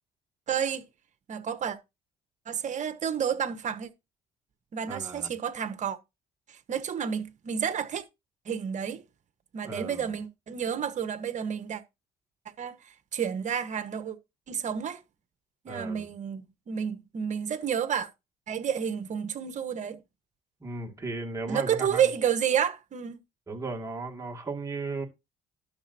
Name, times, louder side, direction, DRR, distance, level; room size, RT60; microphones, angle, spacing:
voice 1, 0.5-0.8 1.3-1.8 2.5-3.9 4.7-6.0 6.5-8.0 8.4-9.0 9.5-11.8 12.6-12.7 13.1-14.2 14.5-15.0 15.6-18.1 18.5-20.0 21.5-23.2, right 8 dB, 45° right, 1.3 m, -30 dB
voice 2, 4.9-5.3 9.6-10.1 15.7-16.1 20.6-22.0 23.5-25.1, right 3 dB, 20° right, 2.3 m, -36 dB
12.0 x 6.9 x 2.8 m
cardioid pair, 110°, 17 cm